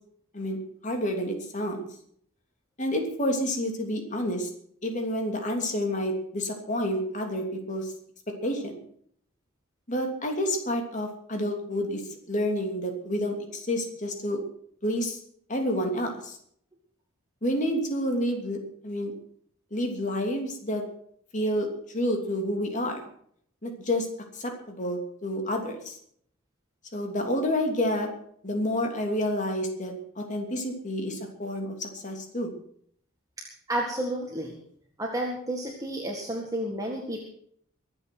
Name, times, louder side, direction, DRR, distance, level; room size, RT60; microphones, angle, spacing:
voice 1, 0.3-1.9 2.8-4.5 4.8-7.9 8.4-8.8 9.9-12.0 12.3-14.4 14.8-15.2 15.5-16.4 17.4-19.1 19.7-20.8 21.3-23.0 23.6-24.1 24.3-26.0 26.9-28.1 28.4-32.5, equal, 35° left, 3 dB, 3.0 m, -29 dB
voice 2, 33.4-34.6 35.0-37.2, right 1 dB, 15° right, 0 dB, 1.8 m, -31 dB
23.0 x 8.2 x 6.1 m, 0.64 s
head